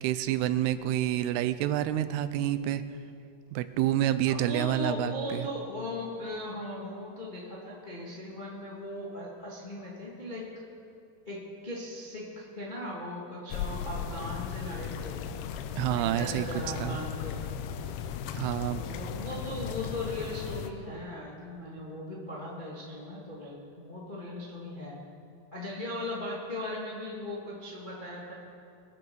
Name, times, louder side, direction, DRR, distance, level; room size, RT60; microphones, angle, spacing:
voice 1, 0.0-2.8 3.5-5.5 15.8-17.0 18.4-18.8, right 12 dB, 90° right, 12 dB, 2.6 m, -28 dB
voice 2, 4.3-10.5 11.2-15.2 15.9-17.4 18.7-25.0 25.5-28.3, left 1 dB, 40° left, -5 dB, 0.6 m, -38 dB
sound 1, 13.5-20.7, left 8 dB, 80° left, 2.5 m, -36 dB
23.0 x 7.8 x 5.4 m, 2.5 s
omnidirectional pair, 4.6 m